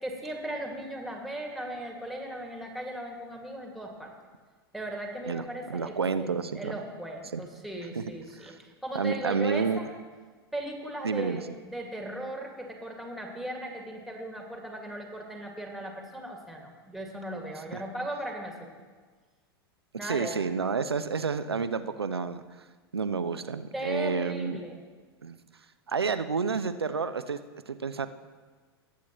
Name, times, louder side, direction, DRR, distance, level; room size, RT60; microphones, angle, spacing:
voice 1, 0.0-4.1 4.7-9.9 10.5-18.7 20.0-20.3 23.7-24.8, right 1 dB, ahead, 1 dB, 1.9 m, -37 dB
voice 2, 5.7-6.7 7.3-7.4 8.0-8.1 8.4-8.6 8.9-9.9 11.0-11.4 17.7-17.8 20.0-22.4 22.9-24.6 25.2-25.4 25.9-27.4 27.7-28.1, right 5 dB, 80° right, 11 dB, 0.5 m, -30 dB
19.5 x 8.4 x 3.0 m, 1.4 s
figure-of-eight pair, 90°, 13 cm